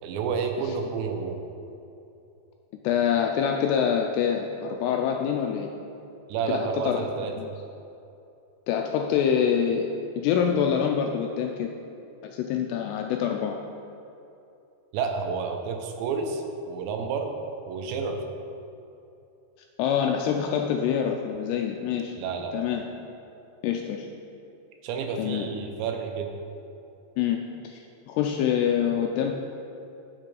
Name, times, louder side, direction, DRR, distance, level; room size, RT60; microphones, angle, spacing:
voice 1, 0.0-1.4 6.3-7.4 14.9-17.3 17.7-18.2 22.2-22.6 24.8-26.3, right 5 dB, 80° right, 4 dB, 2.9 m, -30 dB
voice 2, 2.8-5.7 6.5-7.0 7.4-7.5 8.7-9.9 10.2-11.7 12.2-13.6 19.8-22.1 22.5-22.8 23.6-24.1 25.2-25.5 27.2-27.4 27.6-29.3, left 8 dB, 85° left, 3 dB, 2.4 m, -25 dB
9.0 x 7.5 x 4.8 m, 2.8 s
omnidirectional pair, 5.2 m